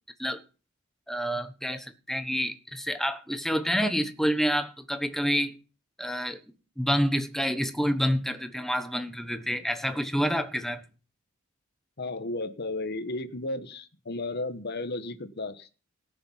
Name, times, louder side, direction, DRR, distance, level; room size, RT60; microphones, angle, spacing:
voice 1, 1.1-5.5 6.0-6.4 6.8-10.8, equal, ahead, 1.1 m, -28 dB
voice 2, 12.0-15.7, left 2 dB, 55° left, 1.2 m, -34 dB
18.5 x 6.8 x 5.6 m
head